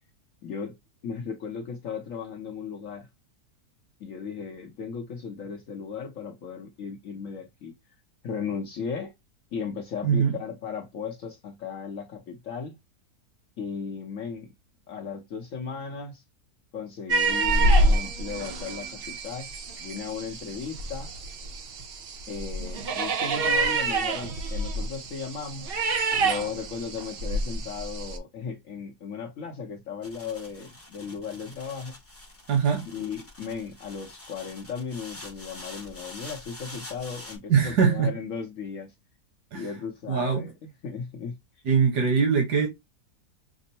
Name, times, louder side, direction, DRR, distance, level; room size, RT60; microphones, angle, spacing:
voice 1, 0.4-0.7 1.0-3.1 4.0-7.7 8.2-9.1 9.5-12.8 13.6-14.5 14.9-16.2 16.7-19.5 19.8-21.1 22.3-25.7 26.2-31.9 32.9-38.9 39.5-41.4, left 6 dB, 60° left, 1.1 m, -36 dB
sound 1, 17.1-28.2, right 2 dB, 60° right, 0.6 m, -27 dB
sound 2, 30.0-37.4, left 2 dB, 10° left, 0.8 m, -45 dB
voice 2, 32.5-32.9 37.5-38.1 39.5-39.7 40.1-40.4 41.6-42.7, right 6 dB, 85° right, 1.6 m, -22 dB
6.0 x 2.0 x 2.7 m
omnidirectional pair, 1.7 m